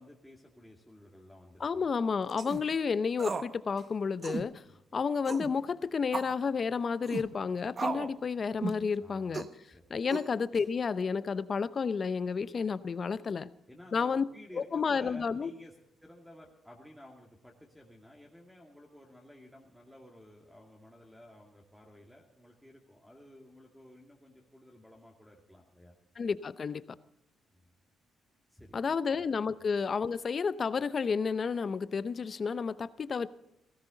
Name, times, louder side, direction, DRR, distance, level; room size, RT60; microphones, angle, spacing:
voice 1, 0.0-1.9 4.7-4.8 9.0-9.4 9.7-9.8 13.7-15.7 16.0-25.9 27.5-27.6 28.5-28.9, left 1 dB, ahead, 2.4 m, -54 dB
voice 2, 1.6-4.6 4.9-9.5 9.9-13.5 13.9-14.2 14.5-15.5 26.2-26.8 28.7-33.3, left 5 dB, 45° left, 0.7 m, -31 dB
sound 1, 2.3-2.6 3.2-3.5 3.8-3.9 4.2-4.5 5.2-5.5 6.1-6.4 7.0-7.3 7.8-8.1 8.6-8.9 9.3-9.5 10.1-10.6, right 4 dB, 40° right, 1.0 m, -35 dB
18.0 x 15.0 x 4.0 m
cardioid pair, 90°, 0 cm